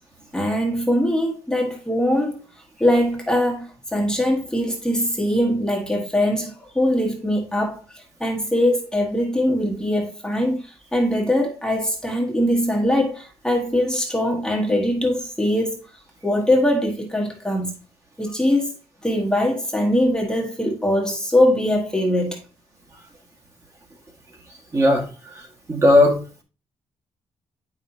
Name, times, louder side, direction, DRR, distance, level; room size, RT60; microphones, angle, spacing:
voice 1, 0.3-2.4 2.8-15.8 16.2-17.7 18.2-18.8 19.0-22.4, left 1 dB, 5° left, 1.3 m, -22 dB
voice 2, 24.7-26.2, left 1 dB, 30° right, 1.7 m, -18 dB
8.3 x 5.6 x 2.8 m
cardioid pair, 105°, 11 cm